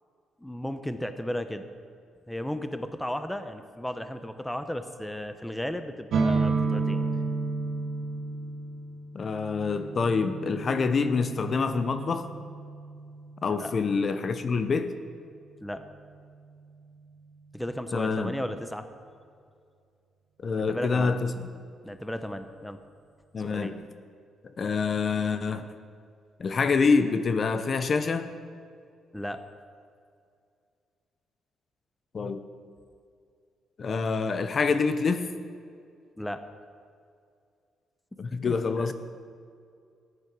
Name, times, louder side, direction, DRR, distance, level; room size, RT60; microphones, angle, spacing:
voice 1, 0.4-1.7 2.3-7.0 13.4-13.7 15.6-15.8 17.5-18.9 20.5-21.2 21.8-22.8 23.4-23.7 29.1-29.4 36.2-36.4 38.4-38.9, equal, 5° left, 9 dB, 0.8 m, -34 dB
sound 1, 6.1-13.7, right 4 dB, 65° right, 1.9 m, -31 dB
voice 2, 9.1-12.3 13.4-14.9 17.9-18.3 20.4-21.3 23.3-23.8 24.6-25.7 26.4-28.3 32.1-32.4 33.8-35.3 38.2-38.9, left 4 dB, 45° left, 10 dB, 0.7 m, -26 dB
13.5 x 9.8 x 6.1 m, 2.3 s
cardioid pair, 90°, 0 cm